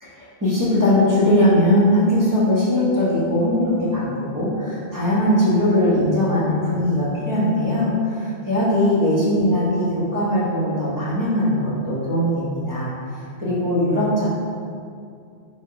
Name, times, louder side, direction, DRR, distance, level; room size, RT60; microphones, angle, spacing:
voice 1, 0.0-12.9 13.4-14.3, left 1 dB, 20° right, -9 dB, 1.0 m, -20 dB
4.5 x 2.4 x 3.8 m, 2.4 s
omnidirectional pair, 1.1 m